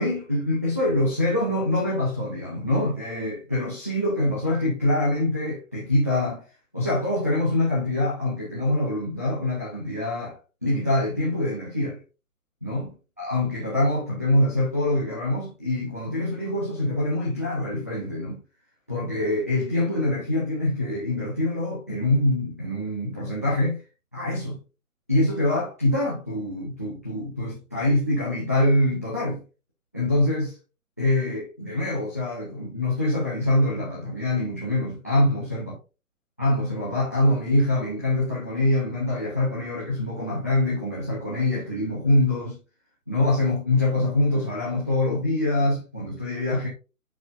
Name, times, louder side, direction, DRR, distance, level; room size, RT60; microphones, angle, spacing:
voice 1, 0.0-6.4 6.7-10.3 10.6-12.0 12.6-12.9 13.2-18.4 18.9-23.8 24.1-24.6 25.1-29.4 29.9-30.6 31.0-35.7 36.4-42.6 43.1-46.7, left 1 dB, 10° left, 0.4 m, -24 dB
9.7 x 4.2 x 2.5 m
figure-of-eight pair, 130°, 44 cm